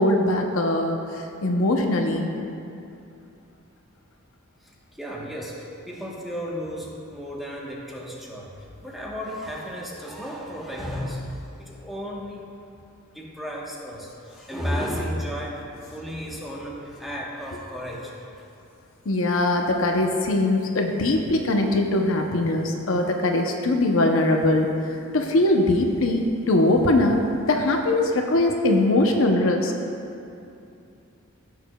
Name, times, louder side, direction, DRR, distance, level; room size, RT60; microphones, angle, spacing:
voice 1, 0.0-2.3 19.1-24.7 25.1-27.2 27.5-29.7, left 2 dB, 65° left, 3 dB, 0.7 m, -21 dB
voice 2, 4.6-12.5 13.1-18.2, equal, ahead, -5 dB, 1.1 m, -33 dB
15.5 x 6.6 x 2.2 m, 2.7 s
head